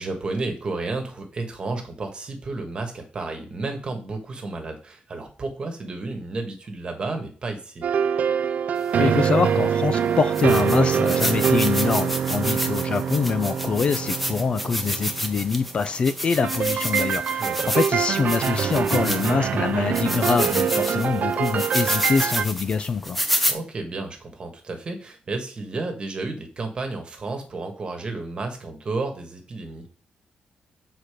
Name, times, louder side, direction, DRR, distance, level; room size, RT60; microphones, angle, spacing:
voice 1, 0.0-7.9 17.4-17.8 23.5-29.9, right 3 dB, 35° right, 1.5 m, -32 dB
sound 1, 7.8-15.6 16.4-22.4, right 7 dB, 55° right, 0.4 m, -24 dB
voice 2, 9.0-17.5 17.7-23.2, left 5 dB, 40° left, 0.4 m, -24 dB
sound 2, 9.2-9.3 9.9-10.0 10.3-19.5 19.9-23.5, equal, ahead, 0.7 m, -29 dB
6.4 x 4.3 x 5.0 m
wide cardioid pair, 160°, 3 cm